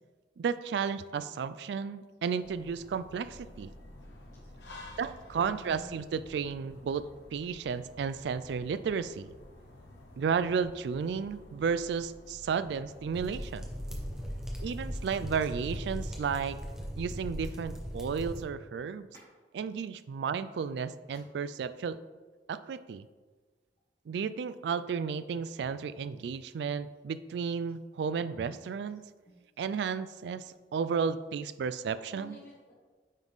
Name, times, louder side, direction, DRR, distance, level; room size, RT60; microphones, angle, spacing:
voice 1, 0.4-3.7 5.0-7.1 7.3-9.3 10.2-13.7 14.6-16.6 17.0-19.1 19.6-22.0 22.5-23.1 24.1-29.0 29.6-30.5 30.7-32.4, right 6 dB, 70° right, 13 dB, 0.3 m, -33 dB
sound 1, 2.4-15.9, left 1 dB, 85° left, 1.2 m, -52 dB
voice 2, 4.4-5.0 5.5-6.1 28.3-28.9 29.2-29.5 32.0-32.7, right 1 dB, 45° left, -9 dB, 1.7 m, -54 dB
sound 2, 13.1-18.4, equal, 5° right, 1.0 m, -38 dB
9.2 x 4.0 x 3.6 m, 1.4 s
head